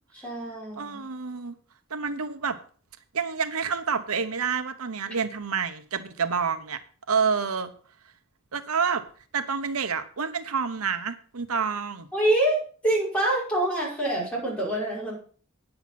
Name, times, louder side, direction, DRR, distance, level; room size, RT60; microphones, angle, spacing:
voice 1, 0.1-1.0 12.1-12.6 12.8-15.1, right 1 dB, 5° left, -5 dB, 5.5 m, -25 dB
voice 2, 0.8-1.5 1.9-2.6 3.1-6.8 7.1-7.7 8.5-9.0 9.3-12.1, right 6 dB, 90° right, 10 dB, 0.9 m, -28 dB
9.6 x 8.0 x 5.8 m, 0.43 s
head